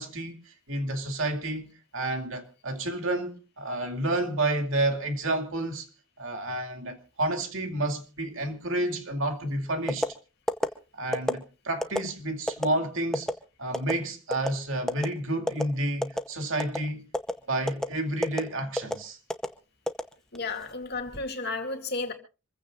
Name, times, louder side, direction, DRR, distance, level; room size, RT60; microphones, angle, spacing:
voice 1, 0.0-5.9 6.2-10.1 10.9-13.3 13.6-17.1 17.5-19.2, right 1 dB, 70° right, 2.4 m, -30 dB
sound 1, 9.9-10.1 10.5-10.7 11.1-11.4 11.8-12.0 12.5-12.7 13.1-13.3 13.7-13.9 14.3-14.5 14.9-15.1 15.5-15.6 16.0-16.3 16.6-16.8 17.1-17.3 17.7-17.9 18.2-18.4 18.8-18.9 19.3-19.5 19.9-20.5 20.9-21.2, equal, 5° left, 0.8 m, -27 dB
voice 2, 20.3-22.1, left 3 dB, 50° left, 2.4 m, -33 dB
27.0 x 15.5 x 2.5 m
head